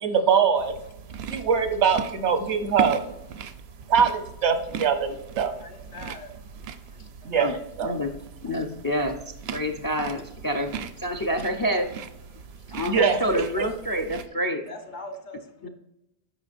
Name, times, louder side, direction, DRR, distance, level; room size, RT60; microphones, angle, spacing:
voice 1, 0.0-0.8 1.3-3.0 3.9-5.6 7.2-7.9 12.8-13.5, right 6 dB, 85° right, 8 dB, 1.2 m, -23 dB
sound 1, 0.6-14.3, right 7 dB, 70° right, 0.8 m, -39 dB
voice 2, 5.6-6.3 7.3-7.4 14.7-15.4, left 2 dB, 50° left, 4 dB, 1.1 m, -40 dB
voice 3, 8.4-9.1 9.5-10.7 11.0-11.9 12.7-14.6 15.6-15.7, equal, 30° left, 6 dB, 0.4 m, -27 dB
8.8 x 5.7 x 2.5 m, 0.85 s
omnidirectional pair, 1.1 m